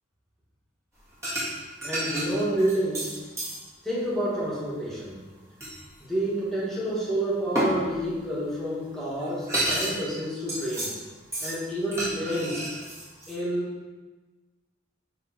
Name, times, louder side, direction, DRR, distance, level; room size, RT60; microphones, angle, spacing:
sound 1, 1.2-1.5 1.8-3.6 5.6-5.8 7.6-7.7 8.9-9.0 9.2-10.0 10.2-10.9 11.3-11.6 11.9-13.3, right 1 dB, 15° right, 1.7 m, -30 dB
voice 1, 1.8-3.1 3.8-5.2 6.1-10.9 11.4-12.7 13.3-13.7, right 1 dB, ahead, -7 dB, 1.8 m, -29 dB
9.5 x 3.4 x 4.3 m, 1.3 s
head